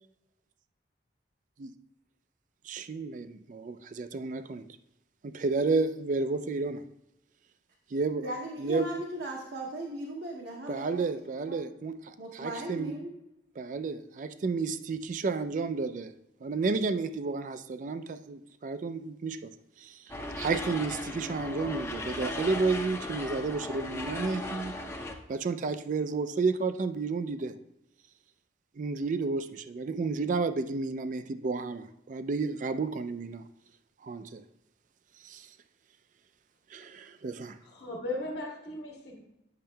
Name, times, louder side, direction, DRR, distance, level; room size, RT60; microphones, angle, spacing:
voice 1, 2.6-4.6 5.2-6.8 7.9-8.2 8.6-8.9 10.7-12.9 13.6-16.1 16.4-19.5 19.8-24.7 25.3-27.5 28.8-33.4 34.0-34.4 35.2-35.5 36.7-37.6, right 4 dB, 45° right, 12 dB, 0.3 m, -31 dB
voice 2, 8.2-11.0 11.5-11.6 12.2-13.1, right 1 dB, 65° right, -1 dB, 0.8 m, -37 dB
sound 1, 20.1-25.1, left 1 dB, 15° left, 0.5 m, -37 dB
voice 3, 37.6-39.2, left 2 dB, 65° left, 0 dB, 1.2 m, -37 dB
8.6 x 6.4 x 2.2 m, 0.88 s
head